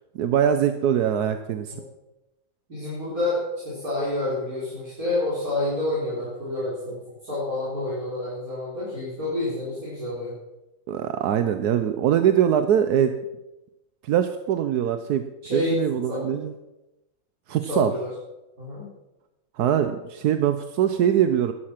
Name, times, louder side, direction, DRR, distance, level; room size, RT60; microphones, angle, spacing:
voice 1, 0.2-1.7 10.9-13.1 14.0-15.2 15.5-16.5 17.5-17.9 19.6-21.5, right 9 dB, 85° right, 9 dB, 1.3 m, -22 dB
voice 2, 2.7-7.0 7.2-10.3 15.4-16.2 17.7-18.1 18.6-18.9, left 2 dB, 65° right, -9 dB, 5.1 m, -28 dB
13.0 x 11.5 x 5.9 m, 0.97 s
omnidirectional pair, 1.6 m